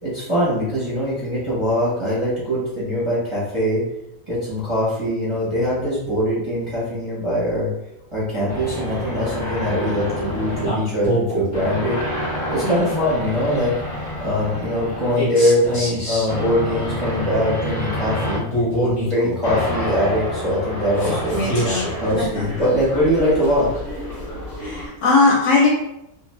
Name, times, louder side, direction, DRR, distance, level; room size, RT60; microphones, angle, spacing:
voice 1, 0.0-3.8 4.3-7.7 8.1-12.0 12.5-13.7 14.2-18.4 18.8-21.4 22.0-23.7, equal, 25° right, -9 dB, 0.8 m, -22 dB
sound 1, 8.5-24.9, equal, 30° left, 0.7 m, -27 dB
voice 2, 12.6-13.0 21.3-22.4 24.6-25.7, left 3 dB, 65° left, -3 dB, 0.9 m, -20 dB
2.6 x 2.3 x 3.1 m, 0.84 s
omnidirectional pair, 1.6 m